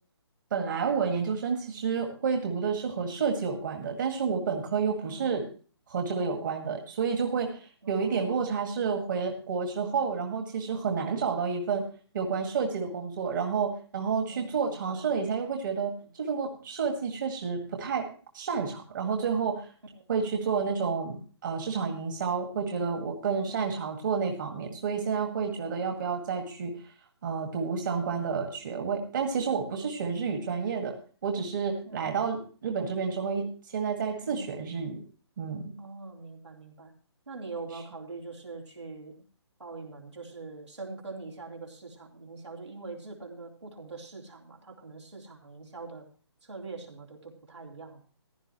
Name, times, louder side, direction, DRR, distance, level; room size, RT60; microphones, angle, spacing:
voice 1, 0.5-5.4 5.9-11.9 12.1-18.1 18.3-19.7 20.1-26.8 27.2-31.0 31.2-35.0 35.4-35.7, right 5 dB, 45° right, 4 dB, 2.0 m, -30 dB
voice 2, 5.0-5.4 7.8-8.5 10.8-11.3 14.2-15.2 20.0-20.1 23.5-23.9 31.9-32.0 34.2-34.6 35.8-36.9 37.3-39.1 39.6-46.1 46.4-48.0, right 3 dB, 85° right, -1 dB, 3.6 m, -43 dB
15.5 x 11.5 x 3.1 m, 0.39 s
figure-of-eight pair, 140°, 14 cm